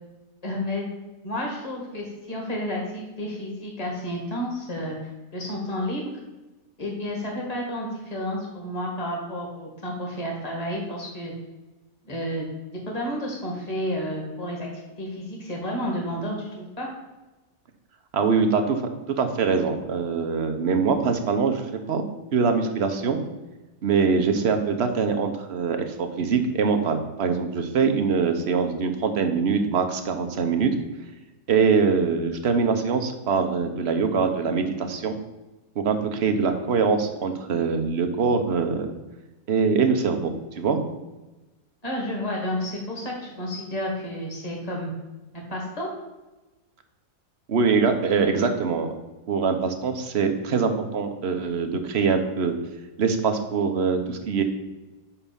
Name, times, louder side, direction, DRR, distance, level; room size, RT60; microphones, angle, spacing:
voice 1, 0.4-0.9 1.2-6.0 6.8-11.3 12.0-12.5 12.9-14.7 15.0-16.9 41.8-44.9 45.3-45.9, equal, 25° left, -1 dB, 2.0 m, -31 dB
voice 2, 18.1-18.8 19.2-22.0 22.3-23.2 23.8-30.7 31.5-35.1 35.8-38.9 39.5-40.3 40.6-40.8 47.5-48.9 49.3-52.5 53.0-54.4, right 5 dB, 50° right, 6 dB, 1.1 m, -23 dB
5.8 x 5.7 x 6.9 m, 1.1 s
omnidirectional pair, 1.5 m